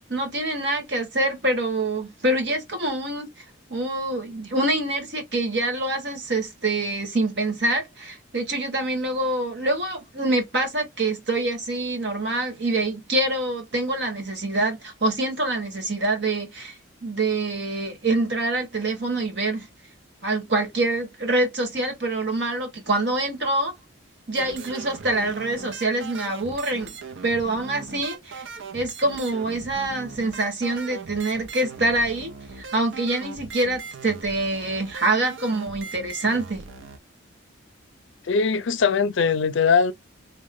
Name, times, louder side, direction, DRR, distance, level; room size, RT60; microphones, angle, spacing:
voice 1, 0.0-3.3 3.7-19.7 20.2-23.7 24.3-26.9 27.2-28.4 28.7-36.6, right 2 dB, 55° right, 1.4 m, -25 dB
sound 1, 24.3-37.0, right 4 dB, 75° right, 0.6 m, -40 dB
voice 2, 38.2-39.9, left 5 dB, 65° left, 0.5 m, -20 dB
3.6 x 2.1 x 3.5 m
head